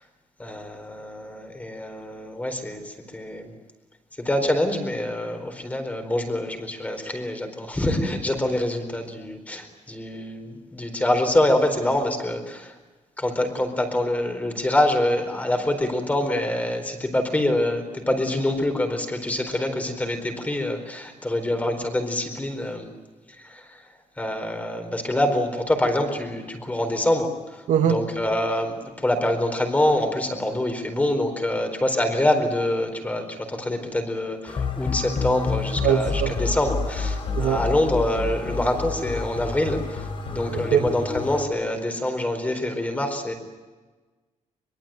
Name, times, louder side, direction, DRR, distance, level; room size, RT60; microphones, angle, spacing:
voice 1, 0.4-3.5 4.2-12.7 13.2-22.9 23.4-23.8 24.2-43.3, left 1 dB, 10° left, 6 dB, 4.3 m, -25 dB
sound 1, 34.5-41.5, left 4 dB, 45° left, 4.0 m, -29 dB
voice 2, 35.8-36.3 37.3-37.6 40.5-40.8, right 9 dB, 80° right, 6 dB, 1.9 m, -21 dB
24.0 x 23.5 x 9.0 m, 1.3 s
cardioid pair, 160°, 13 cm